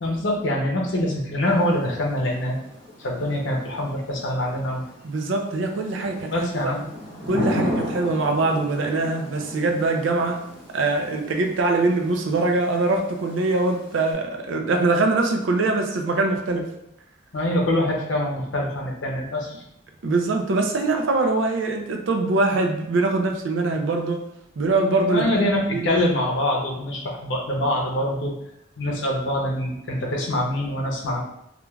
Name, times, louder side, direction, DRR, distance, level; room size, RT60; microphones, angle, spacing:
voice 1, 0.0-2.6 3.0-4.8 6.3-6.8 17.3-19.6 25.1-28.3 28.8-31.2, left 1 dB, 65° left, -1 dB, 0.6 m, -24 dB
Thunder / Rain, 1.4-14.1, equal, 20° left, 1.4 m, -35 dB
voice 2, 5.0-6.7 7.2-10.4 10.7-16.7 20.0-24.2 24.6-25.9, right 3 dB, 70° right, 3 dB, 0.4 m, -23 dB
3.1 x 2.4 x 2.3 m, 0.81 s
head